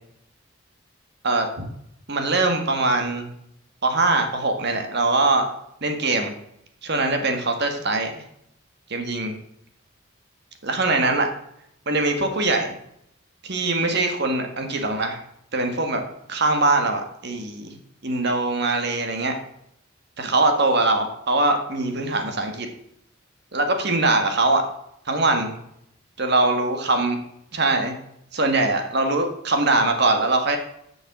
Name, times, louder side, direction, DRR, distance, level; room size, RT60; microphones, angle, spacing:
voice 1, 1.2-1.7 2.1-3.3 3.8-5.5 5.8-6.3 6.8-8.2 8.9-9.3 10.6-11.3 11.8-12.7 13.4-15.2 15.5-16.0 16.3-17.8 18.0-19.3 20.2-22.7 23.5-24.6 25.1-25.5 26.2-27.2 27.5-27.9 28.3-30.6, right 2 dB, 50° right, 5 dB, 1.6 m, -22 dB
7.8 x 6.4 x 7.3 m, 0.75 s
head